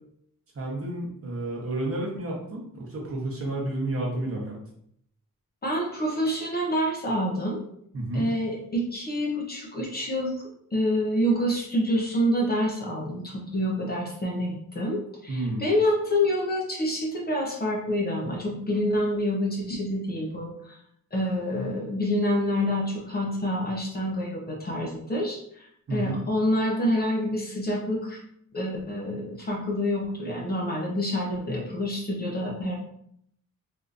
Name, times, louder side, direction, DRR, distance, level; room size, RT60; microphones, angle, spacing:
voice 1, 0.5-4.5 7.9-8.3 15.3-15.6 25.9-26.2, right 2 dB, 40° right, -2 dB, 0.9 m, -31 dB
voice 2, 5.6-7.6 8.1-10.4 10.7-20.8 21.1-28.2 28.5-32.7, equal, 30° left, -2 dB, 0.6 m, -27 dB
3.5 x 2.7 x 2.4 m, 0.69 s
wide cardioid pair, 165°, 33 cm